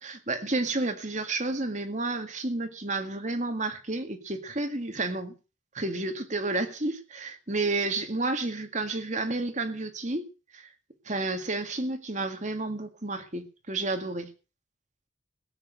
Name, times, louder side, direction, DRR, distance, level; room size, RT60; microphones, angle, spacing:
voice 1, 0.0-5.3 5.7-10.3 10.5-10.7 11.1-14.3, right 2 dB, 40° right, 1.9 m, -31 dB
17.0 x 8.4 x 6.7 m
head